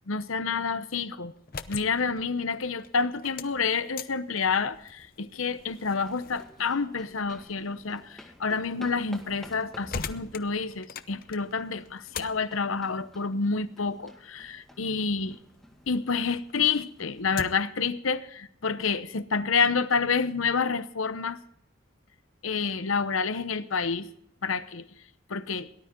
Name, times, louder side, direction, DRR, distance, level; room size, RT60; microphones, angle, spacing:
voice 1, 0.1-1.3 1.7-15.4 15.9-21.4 22.4-24.1 24.4-24.9 25.3-25.7, left 5 dB, 90° left, 13 dB, 0.9 m, -28 dB
sound 1, 1.3-16.0 16.4-17.8, left 5 dB, 45° left, 0.7 m, -44 dB
sound 2, 5.4-17.2, equal, ahead, 1.8 m, -52 dB
18.0 x 12.0 x 3.8 m, 0.70 s
head